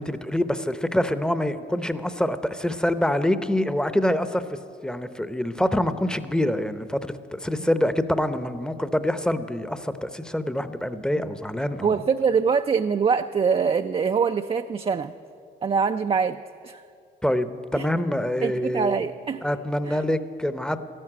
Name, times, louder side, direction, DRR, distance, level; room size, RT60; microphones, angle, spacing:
voice 1, 0.0-11.9 17.2-19.0 19.4-20.8, left 1 dB, 5° left, 11 dB, 0.7 m, -26 dB
voice 2, 11.8-15.1 15.6-16.4 16.6-16.8 17.8-17.9 18.4-19.4 19.9-20.0, right 6 dB, 30° right, 7 dB, 0.4 m, -24 dB
13.5 x 11.0 x 8.9 m, 2.5 s
cardioid pair, 90°, 20 cm